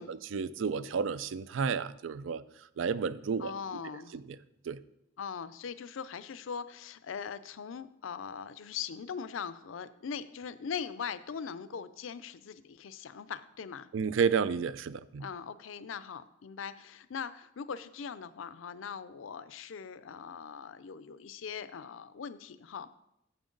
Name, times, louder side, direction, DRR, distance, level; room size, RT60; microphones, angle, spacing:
voice 1, 0.0-2.4 2.8-3.5 4.1-4.2 4.7-4.8 13.9-15.2, right 6 dB, 70° right, 17 dB, 0.4 m, -31 dB
voice 2, 3.4-4.2 5.2-13.9 15.2-22.9, left 6 dB, 75° left, 14 dB, 0.5 m, -41 dB
8.9 x 7.1 x 3.9 m, 0.81 s
head